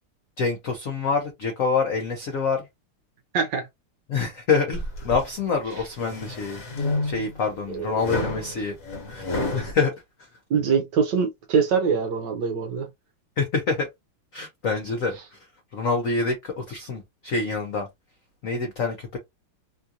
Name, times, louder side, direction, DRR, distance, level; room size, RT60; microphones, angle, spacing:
voice 1, 0.4-2.6 4.1-6.6 7.0-8.7 9.1-9.2 9.5-9.9 13.4-13.9 14.3-15.2 15.7-17.9 18.4-19.2, left 4 dB, 75° left, 0.7 m, -26 dB
voice 2, 3.3-3.7 5.7-5.8 7.7-8.3 10.5-12.9 15.1-15.2, right 5 dB, 70° right, 1.1 m, -24 dB
sound 1, 4.7-5.3 5.8-7.4 8.0-9.7, left 2 dB, 45° left, 1.3 m, -30 dB
3.6 x 2.4 x 2.7 m
omnidirectional pair, 2.3 m